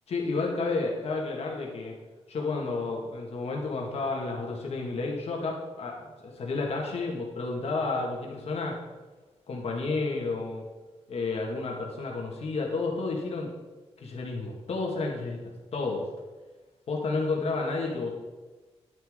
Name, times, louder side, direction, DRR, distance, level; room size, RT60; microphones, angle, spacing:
voice 1, 0.1-1.9 2.3-5.9 6.2-8.8 9.5-10.6 11.1-13.5 14.0-15.4 15.7-16.1 16.9-18.1, left 3 dB, 65° left, 0 dB, 1.9 m, -31 dB
9.9 x 9.7 x 3.8 m, 1.2 s
wide cardioid pair, 125°, 11 cm